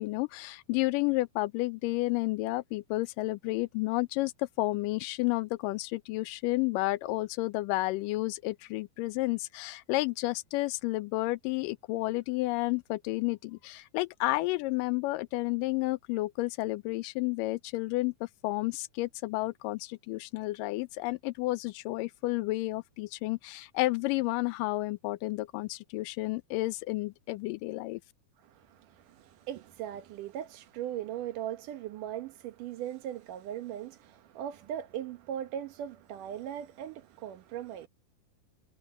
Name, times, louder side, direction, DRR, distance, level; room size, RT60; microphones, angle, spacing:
voice 1, 0.0-28.0, left 20 dB, 85° left, 2.2 m, -31 dB
voice 2, 28.4-37.9, right 11 dB, 75° right, 2.7 m, -39 dB
omnidirectional pair, 3.8 m